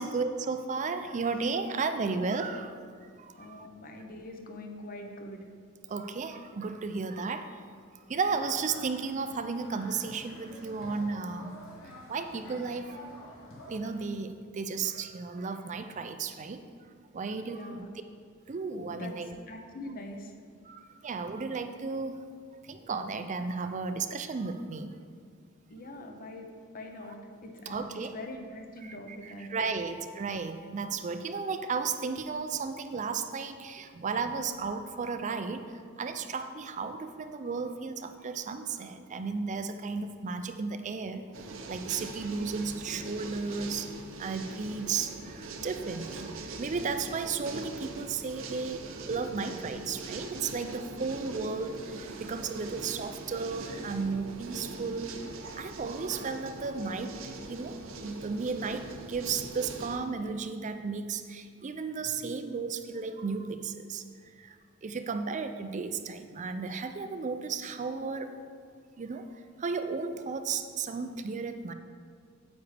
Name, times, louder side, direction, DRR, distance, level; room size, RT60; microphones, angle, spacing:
voice 1, 0.0-2.8 3.2-3.7 5.9-7.5 8.1-11.6 12.1-13.0 13.7-16.6 17.1-17.9 18.5-19.3 20.7-22.2 22.6-24.9 27.1-27.2 27.7-28.1 28.8-35.6 36.0-41.3 41.7-43.9 44.2-46.3 46.6-55.1 55.6-57.2 57.5-64.0 64.4-64.6 64.8-68.3 69.0-69.3 69.6-71.7, right 4 dB, 35° right, 8 dB, 0.4 m, -34 dB
voice 2, 3.4-5.5 17.4-17.9 18.9-20.3 25.7-27.9 28.1-29.7, left 1 dB, 45° left, 4 dB, 0.9 m, -43 dB
sound 1, 8.2-14.0, equal, 75° left, 2.2 m, -49 dB
sound 2, 41.3-60.0, right 3 dB, 70° right, 0.8 m, -42 dB
9.3 x 8.3 x 3.4 m, 2.1 s
head